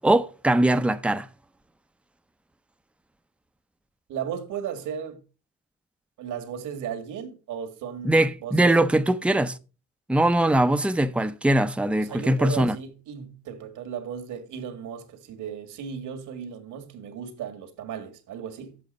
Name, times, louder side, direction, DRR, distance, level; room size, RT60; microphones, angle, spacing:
voice 1, 0.0-1.3 8.0-9.6 10.1-12.7, right 1 dB, 5° right, 0.6 m, -21 dB
voice 2, 4.1-5.2 6.2-9.0 11.9-18.8, right 8 dB, 80° right, 1.8 m, -36 dB
8.2 x 7.6 x 5.2 m
cardioid pair, 90°, 30 cm